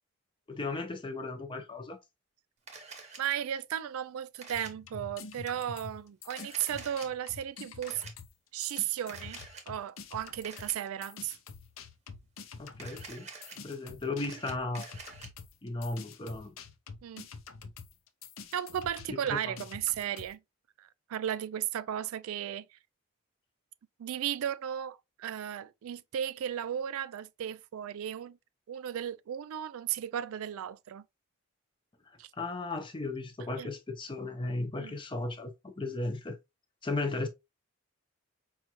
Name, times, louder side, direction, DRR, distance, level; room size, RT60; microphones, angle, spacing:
voice 1, 0.5-2.0 12.6-13.3 13.6-14.9 15.6-16.5 19.1-19.5 32.3-36.4 36.8-37.3, left 2 dB, 20° left, 0.6 m, -35 dB
Camera, 2.7-3.2 4.4-4.7 6.2-7.1 7.8-8.1 9.1-9.6 10.4-10.7 12.7-13.6 14.0-15.3, right 4 dB, 30° right, 0.8 m, -47 dB
voice 2, 3.2-8.0 8.5-9.4 9.7-11.4 17.0-17.3 18.5-20.4 20.8-22.6 24.0-28.4 28.7-31.0 32.2-32.3 33.6-33.7 34.8-34.9, right 10 dB, 75° right, 0.3 m, -35 dB
sound 1, 4.5-8.4 8.6-20.3, left 5 dB, 65° left, 0.5 m, -47 dB
5.0 x 2.4 x 2.9 m
head